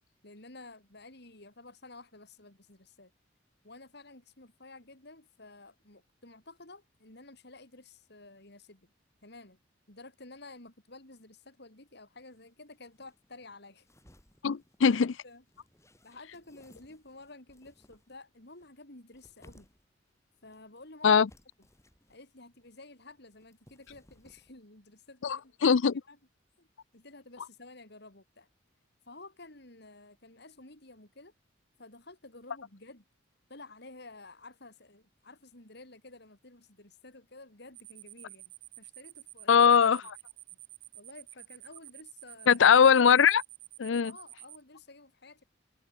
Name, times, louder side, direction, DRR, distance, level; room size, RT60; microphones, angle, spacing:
voice 1, 0.2-3.1 3.6-8.9 9.2-9.6 9.9-13.9 14.9-15.4 16.0-19.7 20.4-21.2 22.1-25.8 26.1-26.2 26.6-26.7 26.9-28.5 29.1-31.3 31.8-33.0 33.5-39.7 40.9-42.6 44.0-45.4, left 2 dB, 60° left, 4.9 m, -52 dB
sound 1, 12.3-12.4 12.7-18.2 18.6-20.0 20.3-21.0 21.3-22.2 22.4-24.6, equal, 15° left, 7.3 m, -62 dB
voice 2, 14.4-15.1 21.0-21.3 25.2-25.9 39.5-40.2 42.5-43.4 43.8-44.1, left 6 dB, 80° left, 0.5 m, -21 dB
sound 2, 37.7-44.6, right 18 dB, 65° right, 7.8 m, -49 dB
head